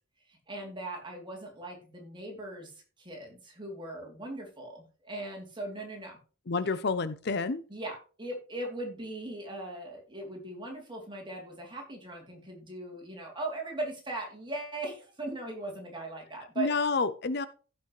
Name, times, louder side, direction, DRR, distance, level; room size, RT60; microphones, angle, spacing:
voice 1, 0.3-2.7 3.0-6.2 7.7-16.7, right 2 dB, 20° right, 0 dB, 3.2 m, -39 dB
voice 2, 6.5-7.6 16.6-17.5, left 4 dB, 50° left, 13 dB, 0.6 m, -29 dB
15.5 x 6.0 x 3.2 m, 0.36 s
head